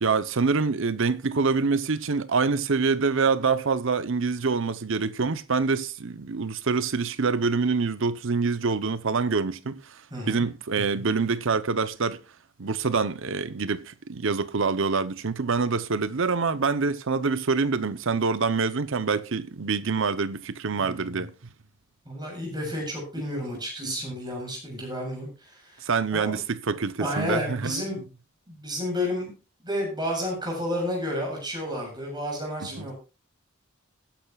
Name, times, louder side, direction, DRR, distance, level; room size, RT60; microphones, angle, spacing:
voice 1, 0.0-9.7 10.3-12.2 12.6-21.3 23.3-23.4 23.9-24.0 25.8-27.8 32.6-32.9, right 4 dB, 65° right, 0.8 m, -26 dB
voice 2, 10.1-10.4 20.8-21.2 22.1-26.4 27.0-28.0 28.5-29.3 29.6-32.9, equal, 20° right, 7.4 m, -31 dB
20.5 x 10.5 x 2.4 m
head